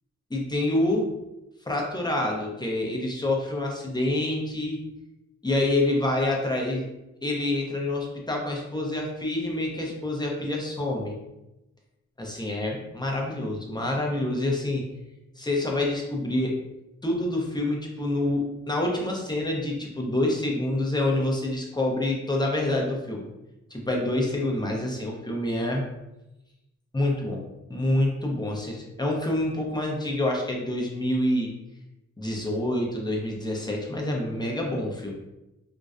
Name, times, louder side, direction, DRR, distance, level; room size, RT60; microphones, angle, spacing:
voice 1, 0.3-1.1 1.6-4.8 5.4-6.9 7.2-11.2 12.2-14.8 15.4-16.6 17.0-23.3 23.7-25.8 26.9-27.4 27.7-31.5 32.2-35.1, left 1 dB, 15° left, -1 dB, 0.5 m, -27 dB
2.5 x 2.1 x 2.4 m, 0.95 s
cardioid pair, 65°, 31 cm